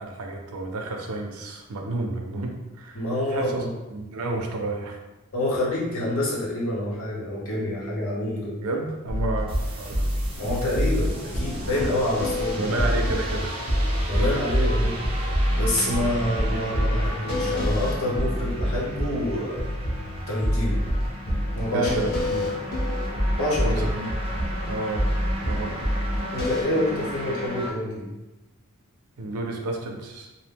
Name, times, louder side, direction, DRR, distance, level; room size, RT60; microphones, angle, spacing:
voice 1, 0.0-5.0 8.6-10.1 12.6-13.6 14.1-14.4 21.7-22.6 23.6-24.1 24.7-25.1 25.4-25.9 29.2-30.3, right 2 dB, 85° right, 2 dB, 0.5 m, -31 dB
voice 2, 2.9-3.7 5.3-8.6 10.4-12.8 14.1-19.7 20.3-20.8 21.5-21.9 22.3-22.4 23.4-23.8 26.3-28.1, left 1 dB, 75° left, -5 dB, 0.9 m, -27 dB
sound 1, 9.1-26.6, equal, 45° left, 0.8 m, -26 dB
sound 2, 9.5-27.7, equal, 25° right, 0.3 m, -35 dB
2.6 x 2.1 x 3.4 m, 1.0 s
head